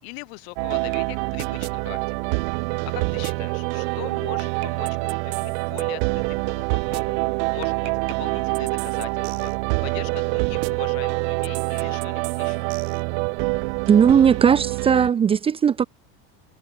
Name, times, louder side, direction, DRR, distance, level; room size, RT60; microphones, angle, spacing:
voice 1, 0.0-2.3 2.9-7.2 7.5-9.5 9.8-12.7, left 29 dB, 75° left, 4.6 m, -40 dB
sound 1, 0.6-15.1, right 37 dB, 70° right, 1.2 m, -26 dB
voice 2, 13.9-15.8, right 7 dB, 20° right, 0.6 m, -17 dB
cardioid pair, 155°, 31 cm